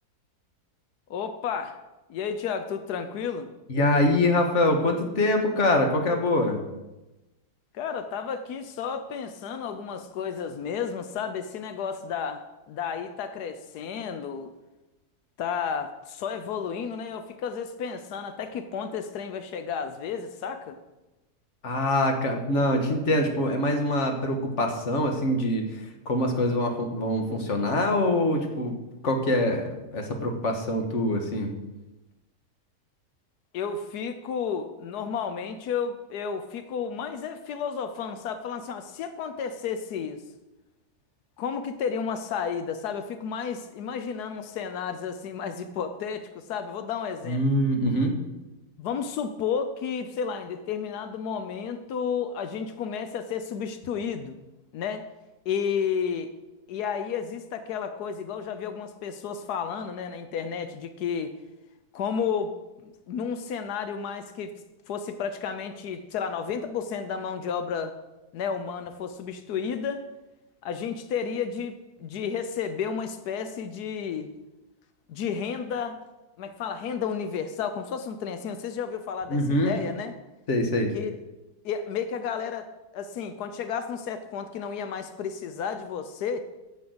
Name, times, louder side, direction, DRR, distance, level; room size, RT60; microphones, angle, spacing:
voice 1, 1.1-1.8 2.1-3.5 7.7-14.5 15.4-20.8 33.5-40.2 41.4-47.4 48.8-54.4 54.7-55.1 55.4-56.3 56.7-61.4 61.9-62.6 62.8-64.5 64.9-68.0 68.3-70.1 70.6-74.3 75.1-76.0 76.4-80.1 80.9-81.2 81.6-82.7 82.9-86.4, left 6 dB, 90° left, 9 dB, 1.3 m, -32 dB
voice 2, 3.7-6.6 21.6-25.6 26.1-28.7 29.0-31.5 47.3-48.1 79.3-79.7 80.5-80.9, left 1 dB, 50° left, 3 dB, 1.9 m, -24 dB
10.5 x 6.9 x 7.9 m, 1.0 s
omnidirectional pair, 1.6 m